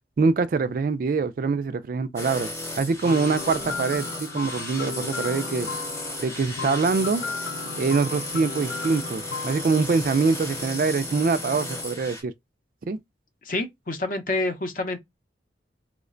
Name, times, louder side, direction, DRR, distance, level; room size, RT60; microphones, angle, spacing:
voice 1, 0.2-2.5 2.8-5.7 6.2-7.2 7.8-12.3 12.9-13.0, right 4 dB, 50° right, 0.3 m, -24 dB
sound 1, 2.2-12.2, left 1 dB, 15° left, 0.8 m, -34 dB
sound 2, 3.0-10.9, left 5 dB, 85° left, 0.3 m, -36 dB
voice 2, 13.4-15.0, left 2 dB, 45° left, 0.7 m, -27 dB
3.1 x 2.1 x 3.7 m
head